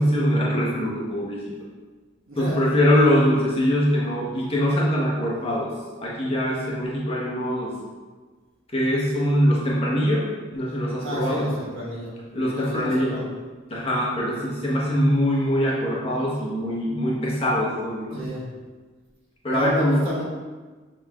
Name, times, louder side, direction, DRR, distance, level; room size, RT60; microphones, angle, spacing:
voice 1, 0.0-1.4 2.4-5.7 6.0-7.7 8.7-10.3 10.5-11.5 12.3-13.2 13.7-18.3 19.4-20.0, equal, 30° left, -5 dB, 0.8 m, -23 dB
voice 2, 2.3-2.6 5.3-5.5 11.0-13.3 18.1-18.5 19.5-20.2, equal, 85° right, -5 dB, 1.3 m, -31 dB
6.6 x 3.2 x 2.3 m, 1.4 s
head